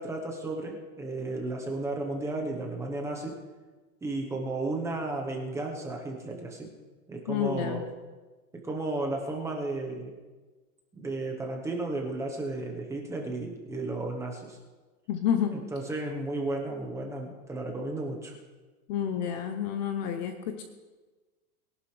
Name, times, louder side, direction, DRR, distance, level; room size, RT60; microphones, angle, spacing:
voice 1, 0.0-3.3 4.0-6.7 7.1-7.8 8.5-10.1 10.9-14.6 15.5-18.3, right 2 dB, 5° right, 0 dB, 1.0 m, -33 dB
voice 2, 7.3-7.8 15.1-15.6 18.9-20.6, left 9 dB, 30° left, 7 dB, 0.7 m, -29 dB
21.5 x 11.5 x 3.3 m, 1.3 s
supercardioid pair, 170°, 46 cm